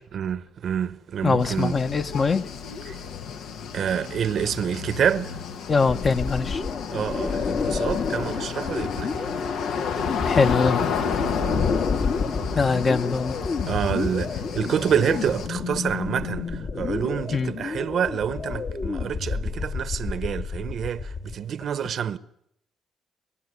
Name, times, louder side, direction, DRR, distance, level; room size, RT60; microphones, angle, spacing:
voice 1, 0.1-1.8 2.9-3.0 3.7-5.4 6.9-9.2 11.4-11.7 12.7-13.0 13.7-22.2, right 8 dB, 60° right, 0.9 m, -28 dB
voice 2, 1.2-2.5 5.7-6.6 10.2-10.9 12.5-13.4 17.3-17.5, left 4 dB, 40° left, 1.2 m, -22 dB
sound 1, 1.4-15.5, left 6 dB, 80° left, 1.3 m, -32 dB
sound 2, 5.9-21.3, left 5 dB, 55° left, 2.4 m, -29 dB
28.5 x 13.0 x 9.8 m
cardioid pair, 90°, 0 cm